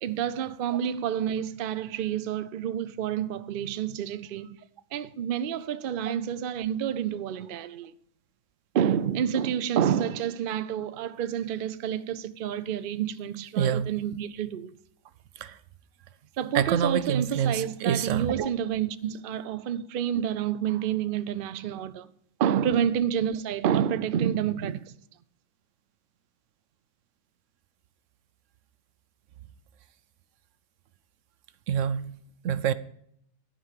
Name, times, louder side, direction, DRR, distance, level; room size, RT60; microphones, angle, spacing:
voice 1, 0.0-4.6 4.9-7.9 8.7-14.7 16.4-22.1 22.4-24.9, right 9 dB, 55° right, 0.7 m, -29 dB
voice 2, 13.6-13.9 15.4-15.6 16.5-18.5 31.7-32.2 32.4-32.7, right 8 dB, 80° right, 1.0 m, -26 dB
13.0 x 5.3 x 7.4 m
omnidirectional pair, 1.3 m